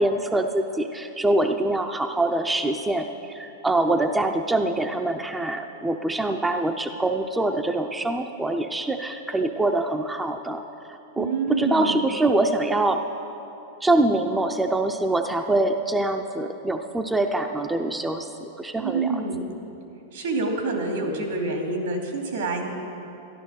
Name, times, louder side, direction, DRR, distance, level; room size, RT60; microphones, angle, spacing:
voice 1, 0.0-10.6 11.2-13.0 13.8-18.3 18.6-19.1, right 2 dB, 5° right, 5 dB, 0.5 m, -24 dB
voice 2, 11.1-12.0 18.8-19.5 20.1-22.7, right 3 dB, 80° right, 2 dB, 2.6 m, -27 dB
12.5 x 11.5 x 6.4 m, 2.9 s
supercardioid pair, 150°, 0 cm